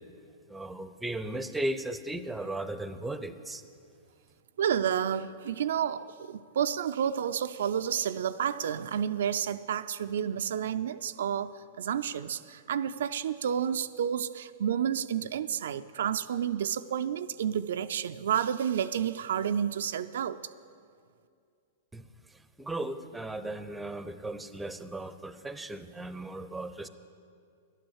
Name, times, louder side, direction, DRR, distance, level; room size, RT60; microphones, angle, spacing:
voice 1, 0.5-3.6 21.9-26.9, right 1 dB, 5° right, 12 dB, 0.6 m, -36 dB
voice 2, 4.6-20.4, right 9 dB, 75° right, 10 dB, 0.3 m, -30 dB
11.0 x 9.0 x 7.1 m, 2.3 s
hypercardioid pair, 115°, 0 cm